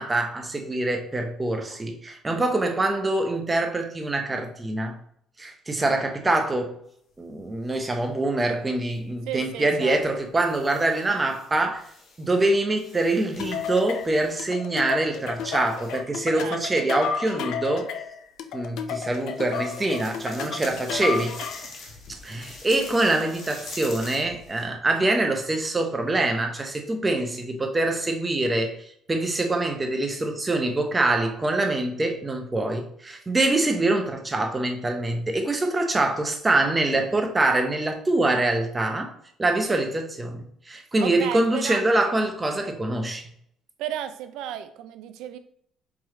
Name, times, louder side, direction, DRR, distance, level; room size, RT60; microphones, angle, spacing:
voice 1, 0.0-5.0 5.4-6.8 7.2-11.9 12.2-17.9 18.5-21.3 22.2-39.1 39.4-43.3, right 2 dB, 15° right, 0.7 m, -25 dB
sound 1, 7.1-7.9 8.9-9.1 10.0-12.4 12.7-16.1 19.0-24.7, left 3 dB, 40° left, 0.9 m, -45 dB
voice 2, 9.3-10.0 16.4-16.6 20.6-20.8 41.0-41.8 43.8-45.4, right 11 dB, 85° right, 0.4 m, -34 dB
sound 2, 13.4-21.7, left 7 dB, 70° left, 0.4 m, -32 dB
4.8 x 3.1 x 3.6 m
cardioid pair, 160°, 0 cm